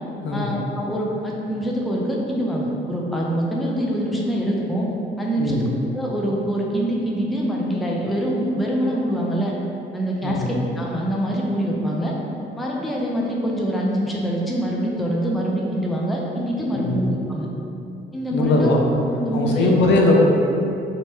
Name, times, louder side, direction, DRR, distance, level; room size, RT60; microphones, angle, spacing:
voice 1, 0.3-4.9 5.2-5.7 5.9-9.5 9.9-12.1 12.5-17.5 18.1-18.7 19.1-19.7, equal, ahead, -3 dB, 0.4 m, -24 dB
voice 2, 5.4-5.7 10.2-10.6 16.7-17.0 18.3-18.8 19.3-20.2, left 2 dB, 65° left, -1 dB, 0.5 m, -20 dB
2.8 x 2.1 x 3.2 m, 2.7 s
cardioid pair, 90°, 20 cm